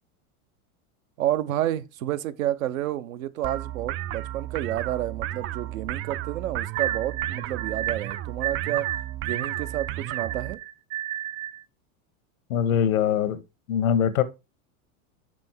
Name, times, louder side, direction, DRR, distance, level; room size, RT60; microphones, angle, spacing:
voice 1, 1.2-8.9 9.2-10.6, right 13 dB, 80° right, 0.9 m, -30 dB
sound 1, 3.4-10.5, right 13 dB, 35° right, 0.4 m, -34 dB
sound 2, 6.7-11.6, right 12 dB, 50° right, 0.8 m, -32 dB
voice 2, 12.5-13.4 13.7-14.2, left 9 dB, 90° left, 1.1 m, -22 dB
6.1 x 5.5 x 4.4 m
hypercardioid pair, 115°, 41 cm